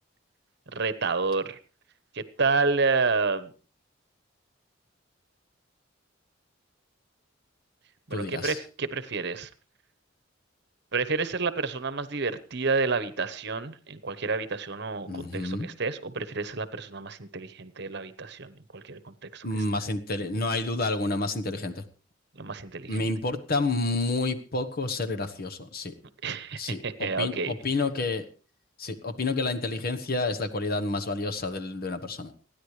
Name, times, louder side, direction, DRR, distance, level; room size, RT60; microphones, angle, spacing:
voice 1, 0.7-1.6 2.1-3.5 8.1-9.5 10.9-19.4 22.4-23.0 26.2-27.5, right 4 dB, 60° right, 13 dB, 1.1 m, -29 dB
voice 2, 8.1-8.6 15.1-15.7 19.4-21.8 22.9-25.9 26.6-28.2 28.8-32.3, left 2 dB, 50° left, 8 dB, 1.2 m, -29 dB
29.5 x 10.5 x 3.3 m, 0.36 s
head